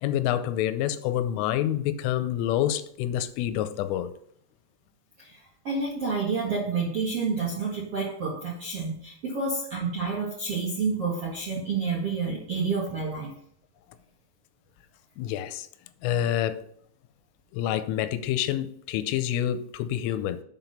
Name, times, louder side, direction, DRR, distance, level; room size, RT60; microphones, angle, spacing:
voice 1, 0.0-4.1 15.2-15.7 16.0-16.6 17.5-20.4, left 11 dB, 85° left, 3.2 m, -27 dB
voice 2, 5.2-13.3, right 4 dB, 60° right, 1.6 m, -29 dB
7.6 x 5.9 x 5.6 m
omnidirectional pair, 5.7 m